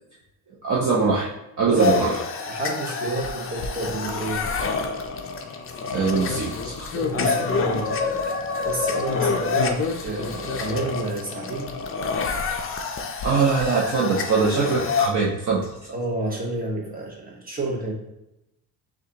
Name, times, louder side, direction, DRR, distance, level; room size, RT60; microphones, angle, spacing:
voice 1, 0.6-1.3 1.6-2.1 5.9-6.9 13.2-15.7, right 4 dB, 40° right, -5 dB, 0.8 m, -22 dB
voice 2, 1.7-2.0 2.5-4.5 6.9-8.2 8.6-11.7 14.4-14.8 15.9-17.9, right 2 dB, 20° right, -2 dB, 1.1 m, -29 dB
sound 1, 1.8-15.1, left 4 dB, 30° left, 0.4 m, -27 dB
6.2 x 2.5 x 2.9 m, 0.88 s
cardioid pair, 115°, 45 cm